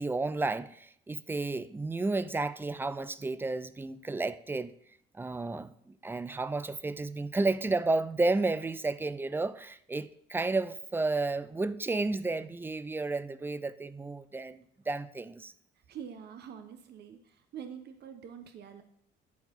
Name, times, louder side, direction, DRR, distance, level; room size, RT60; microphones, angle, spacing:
voice 1, 0.0-4.7 5.1-15.5, right 3 dB, 10° right, 0.4 m, -32 dB
voice 2, 15.9-18.8, right 8 dB, 55° right, 0.9 m, -45 dB
10.5 x 4.4 x 5.3 m
cardioid pair, 95°, 20 cm